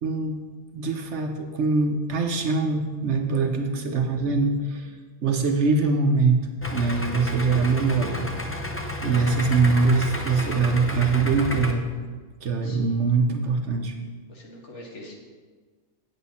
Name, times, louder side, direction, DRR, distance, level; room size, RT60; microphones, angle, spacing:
voice 1, 0.0-0.4 0.7-4.9 5.2-6.4 6.7-8.3 9.0-11.9 12.4-13.9, right 4 dB, 60° right, 4 dB, 1.1 m, -23 dB
Idling, 6.6-11.7, left 1 dB, 15° left, 0.4 m, -31 dB
voice 2, 12.6-13.0 14.3-15.1, left 1 dB, 60° left, -2 dB, 1.9 m, -45 dB
9.2 x 8.2 x 4.2 m, 1.4 s
omnidirectional pair, 1.4 m